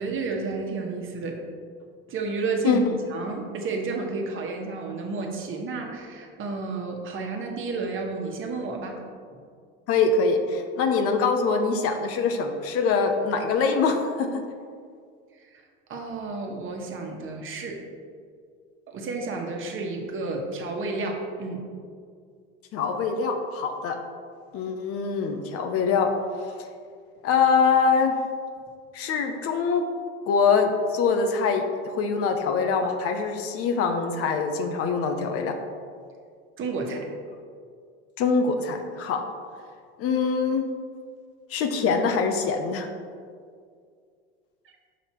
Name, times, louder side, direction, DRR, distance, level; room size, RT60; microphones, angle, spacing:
voice 1, 0.0-1.4 2.1-2.8 3.1-9.0 15.4-15.6 15.9-17.8 18.9-21.6 36.6-37.1, right 3 dB, 45° right, 1 dB, 1.3 m, -31 dB
voice 2, 9.9-14.4 22.7-24.0 24.5-26.1 27.2-28.2 28.9-29.8 30.3-35.5 38.2-39.2 40.0-40.7 41.5-42.9, left 5 dB, 50° left, 5 dB, 0.8 m, -24 dB
5.7 x 5.2 x 4.4 m, 2.1 s
hypercardioid pair, 90°, 30 cm